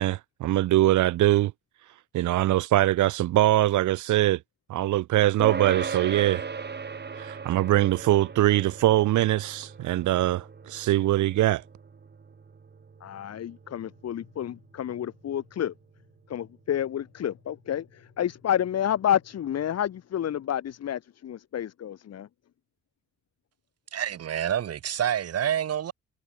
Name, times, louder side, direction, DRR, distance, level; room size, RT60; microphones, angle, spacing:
voice 1, 0.0-1.5 2.1-4.4 4.7-6.4 7.2-11.6, right 15 dB, 75° right, 0.9 m, -22 dB
sound 1, 5.4-15.1, right 5 dB, 35° right, 4.8 m, -38 dB
voice 2, 13.0-15.7 16.3-22.3, left 10 dB, 55° left, 1.4 m, -29 dB
voice 3, 23.9-25.9, right 10 dB, 55° right, 1.4 m, -27 dB
cardioid pair, 90°, 30 cm